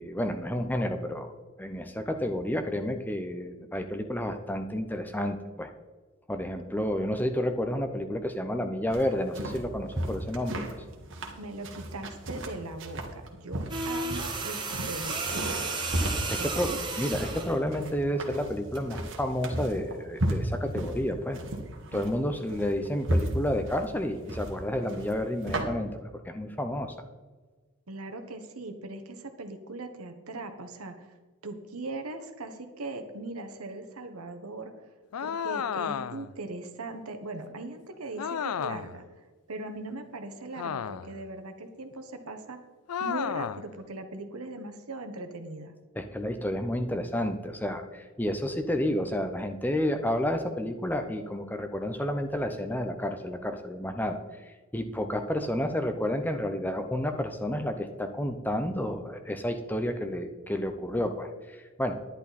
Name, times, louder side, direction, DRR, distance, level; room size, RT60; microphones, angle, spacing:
voice 1, 0.0-5.7 6.3-10.6 16.3-16.7 17.0-21.4 21.9-26.9 46.0-61.9, left 1 dB, 10° left, 6 dB, 0.6 m, -30 dB
sound 1, 8.9-25.6, right 1 dB, 55° right, 1.6 m, -34 dB
voice 2, 11.4-15.6 16.4-16.8 27.9-31.1 31.4-34.9 35.2-39.1 39.5-42.6 43.0-45.7, right 2 dB, 80° right, 7 dB, 1.3 m, -39 dB
sound 2, 13.7-17.6 18.7-18.9, right 3 dB, 20° right, 1.3 m, -33 dB
sound 3, 35.1-36.4 38.2-39.0 40.6-41.2 42.9-43.7, left 8 dB, 85° left, 0.4 m, -33 dB
11.0 x 10.5 x 4.2 m, 1.4 s
head